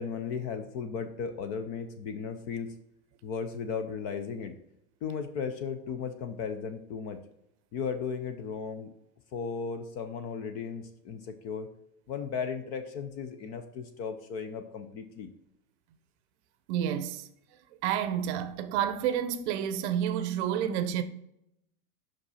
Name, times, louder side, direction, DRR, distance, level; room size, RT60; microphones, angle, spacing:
voice 1, 0.0-2.7 3.2-4.5 5.0-7.2 7.7-8.9 9.3-11.7 12.1-15.3, left 6 dB, 30° left, 0.5 m, -35 dB
voice 2, 16.7-17.2 17.8-21.0, right 9 dB, 45° right, 0.7 m, -29 dB
5.7 x 5.2 x 4.1 m
supercardioid pair, 140°, 46 cm